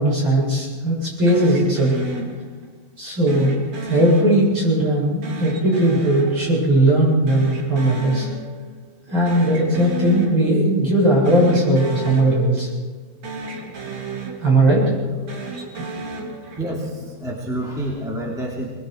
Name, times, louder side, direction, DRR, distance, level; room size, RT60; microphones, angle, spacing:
voice 1, 0.0-2.0 3.0-3.6 3.9-8.3 9.1-12.7 14.4-14.9, right 1 dB, 30° right, -5 dB, 8.6 m, -18 dB
sound 1, 1.3-2.8 3.3-4.8 5.2-7.0 7.3-8.8 9.1-10.8 11.2-13.0 13.2-14.8 15.2-17.0, right 2 dB, 50° right, 3.8 m, -33 dB
voice 2, 16.6-18.7, right 1 dB, ahead, -3 dB, 2.5 m, -28 dB
26.0 x 21.0 x 4.8 m, 1.3 s
omnidirectional pair, 4.2 m